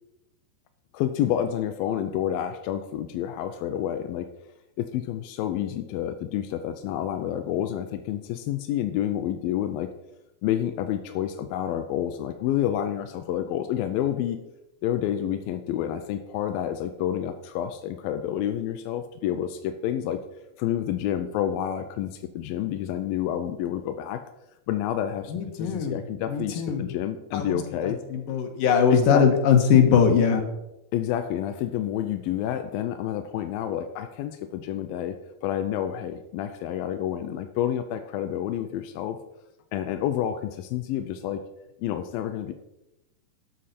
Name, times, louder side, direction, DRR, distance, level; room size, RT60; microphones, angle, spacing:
voice 1, 0.9-4.3 4.8-9.9 10.4-14.4 14.8-20.2 20.6-24.2 24.7-28.0 28.9-29.2 30.9-35.2 35.4-39.2 39.7-41.4 41.8-42.5, left 11 dB, 80° left, 7 dB, 2.1 m, -29 dB
voice 2, 25.3-26.0 26.3-26.9 27.3-30.4, left 7 dB, 65° left, 4 dB, 2.8 m, -21 dB
12.5 x 9.0 x 4.3 m, 0.91 s
omnidirectional pair, 4.9 m